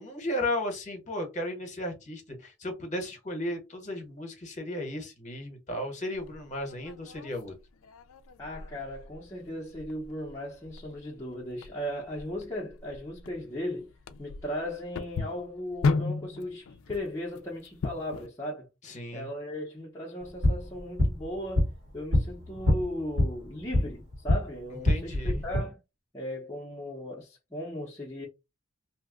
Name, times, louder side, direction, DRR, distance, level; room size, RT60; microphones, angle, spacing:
voice 1, 0.0-7.5 18.8-19.3 24.8-25.4, left 1 dB, 35° left, 1.0 m, -35 dB
sound 1, 6.1-18.3, left 4 dB, 90° left, 0.4 m, -36 dB
voice 2, 8.4-13.9 14.2-21.7 21.9-25.8 26.1-28.3, left 1 dB, 15° left, 0.7 m, -37 dB
sound 2, 20.2-24.4 24.8-25.6, left 1 dB, 70° right, 1.6 m, -26 dB
2.8 x 2.3 x 3.5 m
head